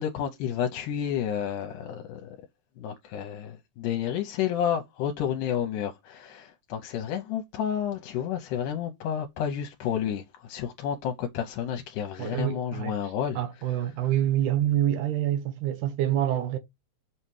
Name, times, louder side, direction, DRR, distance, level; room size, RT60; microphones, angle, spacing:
voice 1, 0.0-2.4 2.8-13.4, left 9 dB, 80° left, 2.2 m, -30 dB
voice 2, 12.2-12.9 13.4-16.6, right 12 dB, 75° right, 2.1 m, -26 dB
5.6 x 5.5 x 3.2 m
omnidirectional pair, 3.7 m